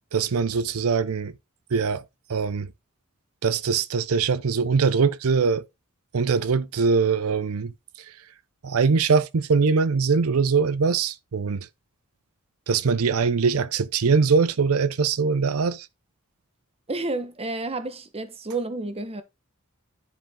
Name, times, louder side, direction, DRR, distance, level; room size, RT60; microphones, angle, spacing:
voice 1, 0.1-1.3 1.7-2.0 2.3-2.7 3.4-5.6 6.1-7.7 8.6-11.6 12.7-15.9, right 5 dB, 85° right, 0.6 m, -22 dB
voice 2, 16.9-19.2, right 2 dB, 30° right, 1.0 m, -30 dB
10.5 x 4.9 x 3.6 m
head